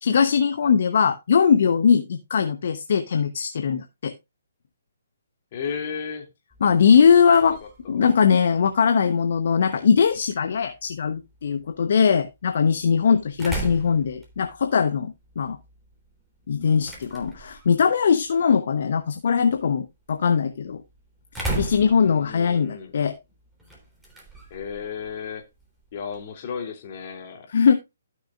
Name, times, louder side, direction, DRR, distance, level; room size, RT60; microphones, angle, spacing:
voice 1, 0.0-4.1 6.6-7.6 7.9-15.6 16.5-20.8 21.6-23.2 27.5-27.7, left 6 dB, 55° left, 0.9 m, -20 dB
voice 2, 5.5-6.3 7.4-7.5 7.8-8.1 22.0-23.0 24.5-25.4 25.9-27.5, left 6 dB, 40° left, 2.7 m, -34 dB
sound 1, 6.5-26.4, right 2 dB, 5° right, 3.4 m, -40 dB
15.0 x 6.4 x 2.4 m
figure-of-eight pair, 130°, 0 cm